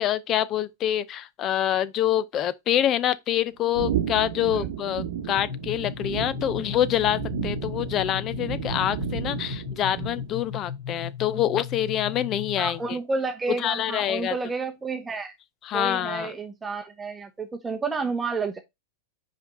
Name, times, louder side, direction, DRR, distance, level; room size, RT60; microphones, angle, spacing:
voice 1, 0.0-13.0 13.6-14.3 15.6-16.3, left 11 dB, 35° left, 0.6 m, -26 dB
sound 1, 3.7-10.5, right 9 dB, 70° right, 0.9 m, -33 dB
sound 2, 5.4-12.9, left 8 dB, 65° left, 2.4 m, -36 dB
voice 2, 12.6-15.3 15.7-18.6, right 4 dB, 15° right, 0.9 m, -30 dB
5.1 x 5.1 x 3.8 m
hypercardioid pair, 110°, 0 cm